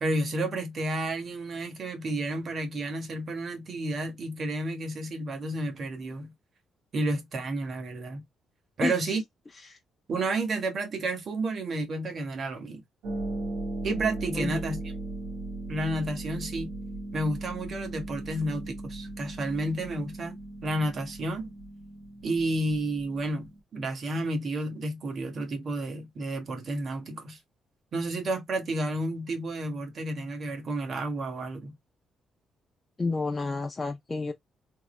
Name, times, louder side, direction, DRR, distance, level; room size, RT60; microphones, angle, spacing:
voice 1, 0.0-6.3 6.9-8.2 8.8-9.2 10.1-12.8 13.8-14.8 15.7-16.7 17.1-21.5 22.2-27.4 27.9-31.7, right 2 dB, 50° right, 1.2 m, -31 dB
Harp, 13.0-23.6, right 2 dB, 90° right, 1.2 m, -38 dB
voice 2, 33.0-34.3, left 3 dB, 25° left, 0.5 m, -30 dB
3.6 x 2.0 x 3.1 m
cardioid pair, 90°, 0 cm